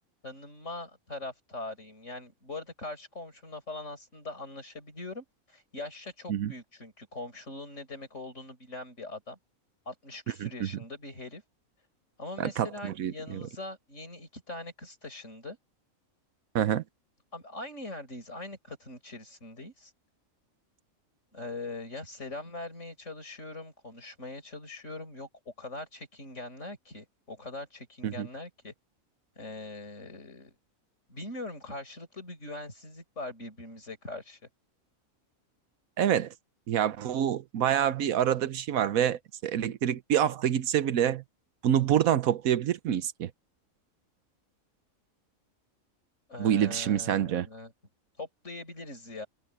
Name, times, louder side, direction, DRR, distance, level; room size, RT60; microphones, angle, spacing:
voice 1, 0.2-9.4 9.9-11.4 12.2-15.6 17.3-19.9 21.3-28.7 29.4-30.5 31.1-34.4 46.3-47.7 48.2-49.3, left 2 dB, 60° left, 6.7 m, -42 dB
voice 2, 12.4-13.4 16.5-16.8 28.0-28.3 36.0-36.3 36.7-41.2 41.6-43.3 46.4-47.5, right 10 dB, 80° right, 1.2 m, -27 dB
omnidirectional pair, 1.4 m